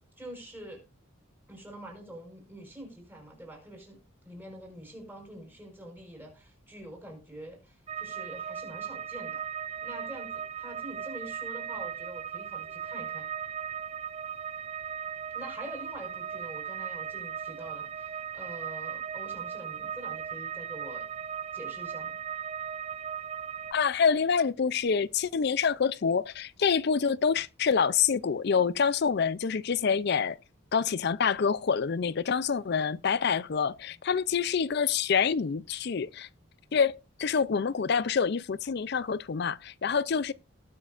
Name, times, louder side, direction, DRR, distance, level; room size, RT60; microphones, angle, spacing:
voice 1, 0.2-0.8 1.5-4.0 4.2-9.4 9.8-13.3 15.3-21.0 21.5-22.2, right 1 dB, 10° right, 5.1 m, -45 dB
sound 1, 7.9-23.7, right 8 dB, 30° right, 0.5 m, -37 dB
voice 2, 23.7-30.4 30.7-36.3 36.7-40.3, left 6 dB, 50° left, 0.4 m, -27 dB
19.0 x 6.5 x 2.5 m
head